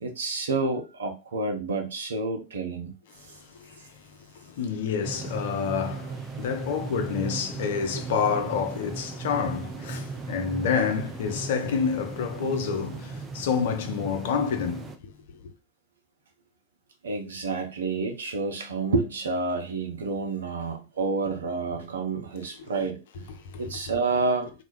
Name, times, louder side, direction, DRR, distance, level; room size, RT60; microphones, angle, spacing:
voice 1, 0.0-3.0 17.0-23.3 23.6-24.5, right 3 dB, 65° right, 0.6 m, -29 dB
voice 2, 3.2-15.1 15.4-15.5 22.6-22.7 23.4-23.6, left 6 dB, 55° left, 0.4 m, -29 dB
sound 1, 5.0-15.0, right 4 dB, 20° right, 0.4 m, -37 dB
2.3 x 2.0 x 3.0 m
figure-of-eight pair, 90°, 0 cm